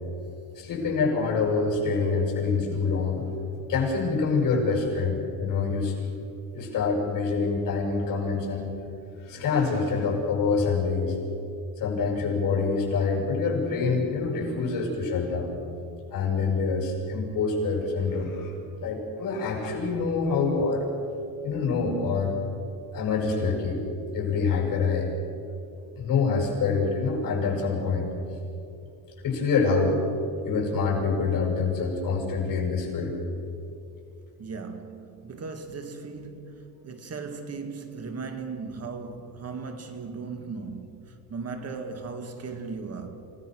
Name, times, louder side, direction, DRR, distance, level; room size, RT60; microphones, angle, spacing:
voice 1, 0.6-3.4 3.7-5.9 6.5-8.7 9.2-11.2 11.8-15.5 16.1-18.5 18.8-20.9 21.4-22.4 22.9-23.8 24.1-25.1 26.0-28.1 29.2-30.0 30.4-33.2, left 4 dB, 60° left, 7.2 m, -26 dB
voice 2, 34.4-43.3, right 4 dB, 40° right, 2.1 m, -37 dB
28.5 x 18.0 x 6.3 m
cardioid pair, 120°, 37 cm